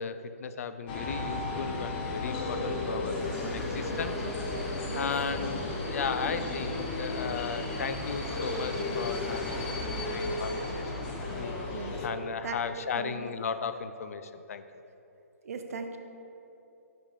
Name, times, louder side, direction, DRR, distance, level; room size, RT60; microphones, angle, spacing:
voice 1, 0.0-4.2 4.7-9.7 10.1-14.6, left 6 dB, 65° left, 10 dB, 0.4 m, -36 dB
sound 1, 0.9-12.1, left 2 dB, 40° left, 1.0 m, -34 dB
sound 2, 3.2-11.5, equal, 5° right, 0.8 m, -41 dB
voice 2, 7.0-7.4 11.7-12.1 12.4-12.6 12.9-13.3 15.4-16.0, right 4 dB, 65° right, 6 dB, 0.7 m, -39 dB
5.9 x 5.1 x 5.0 m, 2.8 s
figure-of-eight pair, 130°, 9 cm